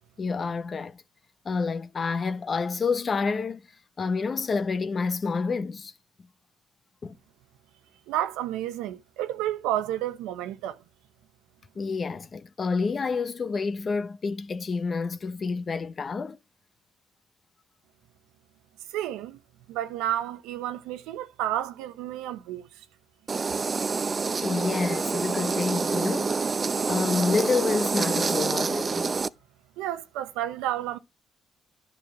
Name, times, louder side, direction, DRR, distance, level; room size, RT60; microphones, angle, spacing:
voice 1, 0.2-1.0 1.4-3.6 4.0-5.9 7.0-7.2 11.8-16.4 24.4-26.4 26.9-29.1, left 4 dB, 45° left, 1.0 m, -28 dB
voice 2, 8.1-10.8 18.9-19.4 19.7-22.9 29.8-31.0, right 12 dB, 90° right, 0.9 m, -31 dB
sound 1, 23.3-29.3, right 4 dB, 35° right, 0.6 m, -27 dB
11.0 x 5.5 x 6.0 m
supercardioid pair, 65°, 0 cm